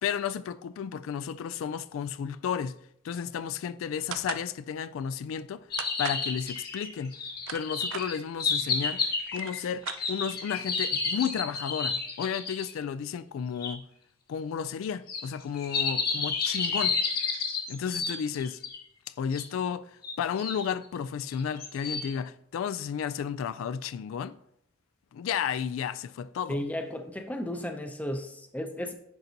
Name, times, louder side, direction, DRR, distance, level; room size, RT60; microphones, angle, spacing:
voice 1, 0.0-2.8 3.0-5.7 6.0-7.2 7.5-13.8 14.3-17.0 17.7-18.6 19.2-24.4 25.1-26.6, left 7 dB, 85° left, 0.3 m, -33 dB
sound 1, 4.1-4.5 5.8-6.3 7.2-8.1 8.9-9.0 9.2-10.4, right 8 dB, 75° right, 0.4 m, -38 dB
sound 2, 5.7-12.7 13.6-13.7 15.1-18.8 19.3-19.4 20.0-20.7 21.3-22.1, left 5 dB, 50° left, 1.1 m, -31 dB
voice 2, 26.5-28.9, left 1 dB, 10° left, 0.6 m, -34 dB
10.5 x 3.9 x 2.8 m
head